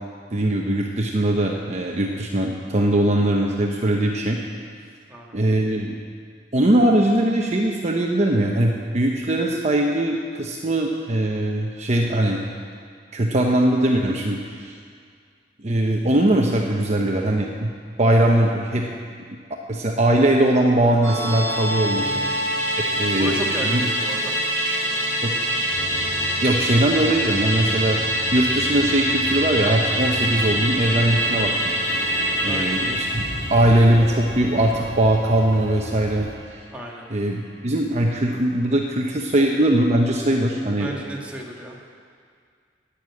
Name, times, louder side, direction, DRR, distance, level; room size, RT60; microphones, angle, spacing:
voice 1, 0.3-4.4 5.3-6.0 6.5-12.4 13.1-14.7 15.6-17.7 18.0-18.9 19.7-22.2 22.9-23.3 23.6-23.8 25.2-25.3 26.4-28.0 28.3-31.7 32.4-33.2 33.5-36.6 37.1-40.9, right 1 dB, 40° right, 0 dB, 0.9 m, -20 dB
Musical instrument, 21.0-35.7 36.0-36.1, equal, 15° left, 4.2 m, -25 dB
voice 2, 22.0-22.4 23.1-24.4 24.6-25.0 32.4-32.8 36.7-37.1 40.7-41.8, right 1 dB, 5° right, -3 dB, 1.9 m, -33 dB
sound 1, 25.7-36.3, left 1 dB, 55° left, 4.1 m, -36 dB
11.5 x 9.4 x 8.5 m, 2.1 s
head